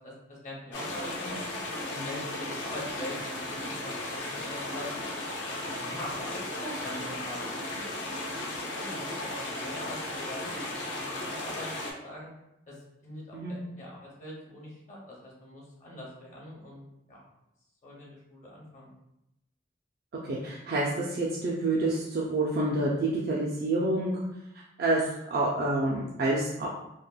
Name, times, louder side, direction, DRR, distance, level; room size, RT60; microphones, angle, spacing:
voice 1, 0.0-1.3 1.9-4.9 5.6-8.4 8.6-12.3 12.7-12.8 13.0-17.2 17.8-18.9, left 1 dB, 40° left, -4 dB, 0.6 m, -43 dB
sound 1, 0.7-11.9, left 1 dB, 85° left, 0.6 m, -35 dB
voice 2, 20.3-24.2 24.8-26.7, right 2 dB, 55° right, -5 dB, 0.4 m, -28 dB
3.2 x 2.1 x 2.2 m, 0.87 s
head